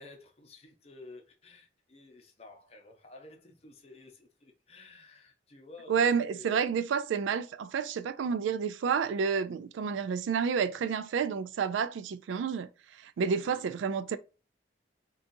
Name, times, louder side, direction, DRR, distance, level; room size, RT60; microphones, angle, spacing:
voice 1, 0.0-6.7 13.3-13.7, left 3 dB, 35° left, 0.6 m, -52 dB
voice 2, 5.9-12.7 13.0-14.2, right 6 dB, 85° right, 0.3 m, -30 dB
3.8 x 2.3 x 2.6 m
head